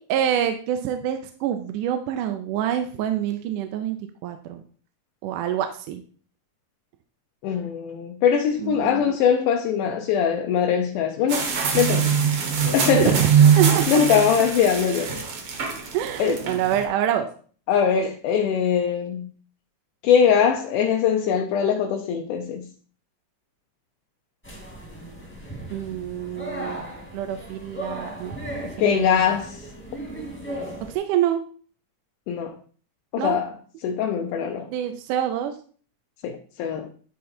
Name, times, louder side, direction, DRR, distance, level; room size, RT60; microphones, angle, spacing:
voice 1, 0.0-4.0 4.2-4.6 5.2-6.0 8.6-9.1 13.0-14.0 15.9-17.3 25.7-26.8 27.1-28.3 28.8-29.2 30.9-31.4 33.2-33.4 34.7-35.5, right 10 dB, 80° right, 2.1 m, -26 dB
voice 2, 7.4-12.1 12.7-13.2 13.9-15.2 16.2-16.4 17.7-19.3 20.0-22.7 28.6-29.6 32.3-32.6 33.1-33.6 33.8-34.7 36.2-36.9, left 7 dB, 75° left, 2.1 m, -22 dB
sound 1, 11.3-16.8, right 7 dB, 55° right, 1.6 m, -22 dB
sound 2, 24.4-31.0, right 1 dB, 5° left, 1.0 m, -36 dB
11.0 x 3.8 x 4.3 m
omnidirectional pair, 3.9 m